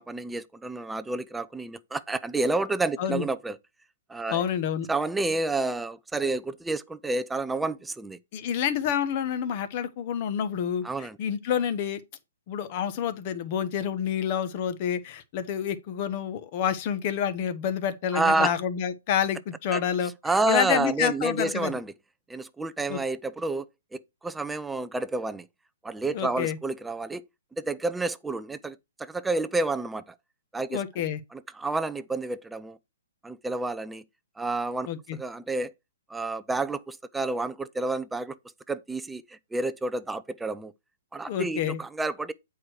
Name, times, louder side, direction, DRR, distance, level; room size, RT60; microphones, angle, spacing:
voice 1, 0.0-3.6 4.1-4.4 4.9-8.2 10.8-11.2 18.1-18.5 19.7-19.8 20.2-21.9 22.3-23.7 24.2-25.4 25.8-27.2 27.6-30.0 30.5-30.8 31.3-32.8 33.2-34.0 34.4-35.7 36.1-38.4 38.7-39.2 39.5-40.7 41.1-42.3, right 2 dB, 5° right, 0.4 m, -29 dB
voice 2, 4.3-4.9 8.3-12.0 12.5-21.7 22.9-23.0 26.1-26.6 30.7-31.2 34.9-35.2 41.3-41.8, left 8 dB, 35° left, 1.1 m, -28 dB
8.6 x 4.7 x 4.7 m
hypercardioid pair, 155°, 0 cm